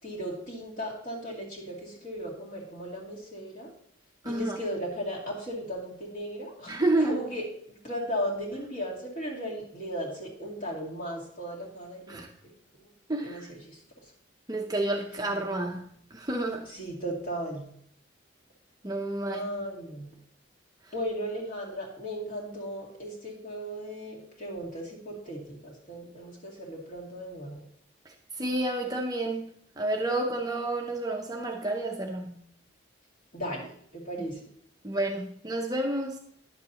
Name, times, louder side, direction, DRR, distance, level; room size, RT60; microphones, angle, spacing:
voice 1, 0.0-3.7 4.2-7.4 7.8-12.3 12.8-12.9 13.2-14.1 16.7-17.7 19.3-20.1 20.9-27.6 33.3-34.4, equal, 45° left, 2.5 m, -36 dB
voice 2, 4.2-4.6 6.7-7.2 12.1-12.3 13.1-13.4 14.5-16.7 18.8-19.5 28.4-29.5 29.8-32.4 34.8-36.2, right 2 dB, 20° right, 0.6 m, -30 dB
10.5 x 7.3 x 2.9 m
head